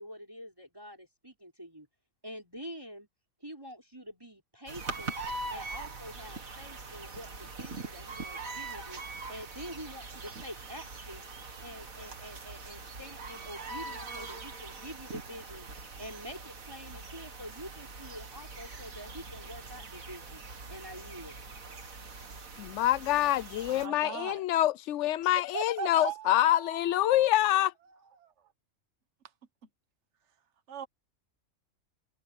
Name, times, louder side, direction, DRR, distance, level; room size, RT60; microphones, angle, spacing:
voice 1, 0.0-1.9 2.2-3.1 3.4-5.1 5.5-9.0 9.3-11.3 11.6-15.7 16.0-20.4 20.7-21.4, equal, 15° right, 6.2 m, -46 dB
sound 1, 4.7-23.9, right 3 dB, 90° right, 2.6 m, -42 dB
voice 2, 22.6-27.7, left 13 dB, 65° left, 0.9 m, -26 dB
voice 3, 23.7-24.4 25.5-27.3 27.9-28.3 30.7-30.9, right 6 dB, 60° right, 1.7 m, -40 dB
omnidirectional pair, 1.4 m